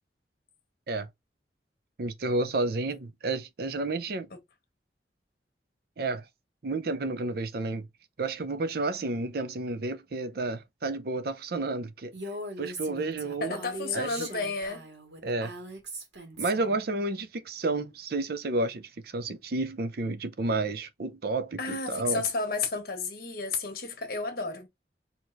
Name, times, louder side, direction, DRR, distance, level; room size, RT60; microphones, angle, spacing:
voice 1, 2.0-4.3 6.0-6.2 6.6-7.9 8.2-12.1 12.6-13.6 13.9-14.3 15.2-15.5 16.4-22.2, right 2 dB, 60° right, 0.5 m, -31 dB
Female speech woman speaking, 12.1-16.8, right 1 dB, 85° right, 1.8 m, -40 dB
voice 2, 13.4-14.9 21.6-24.7, left 4 dB, 55° left, 1.3 m, -32 dB
4.6 x 2.9 x 2.5 m
head